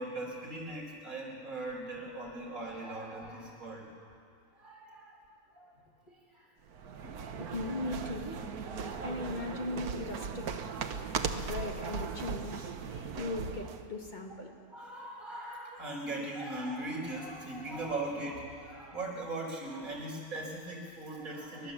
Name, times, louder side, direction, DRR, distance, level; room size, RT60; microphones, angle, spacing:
voice 1, 0.0-3.8 4.6-5.2 5.5-5.8 6.3-6.5 7.0-7.2 8.7-9.2 14.7-21.7, right 2 dB, 65° right, -2 dB, 4.7 m, -39 dB
sound 1, 6.7-13.9, right 6 dB, 90° right, 1.5 m, -38 dB
voice 2, 7.4-8.4 9.0-10.6 11.3-14.5, left 2 dB, 30° left, 1 dB, 2.0 m, -38 dB
29.5 x 12.0 x 7.4 m, 2.3 s
omnidirectional pair, 1.6 m